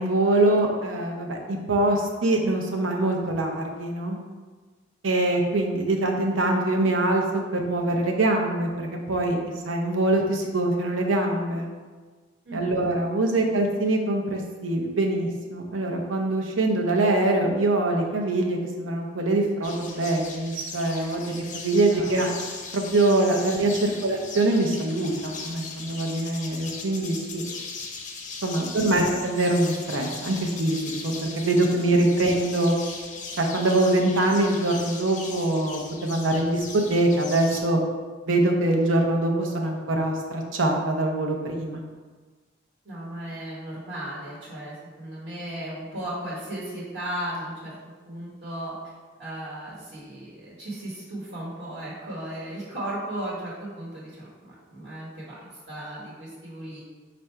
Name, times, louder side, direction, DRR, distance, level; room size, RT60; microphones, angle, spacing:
voice 1, 0.0-4.2 5.0-9.4 9.6-11.7 12.5-22.3 22.7-27.4 28.4-32.8 33.4-37.8 38.3-41.8, right 2 dB, 90° right, 1 dB, 0.7 m, -24 dB
voice 2, 12.4-12.9 21.9-22.4 23.9-24.1 42.8-47.7 48.1-48.7 49.2-55.4 55.7-56.8, right 1 dB, 60° right, -6 dB, 1.1 m, -36 dB
sound 1, 19.6-37.6, left 4 dB, 40° left, 0.5 m, -39 dB
4.4 x 2.5 x 4.4 m, 1.4 s
head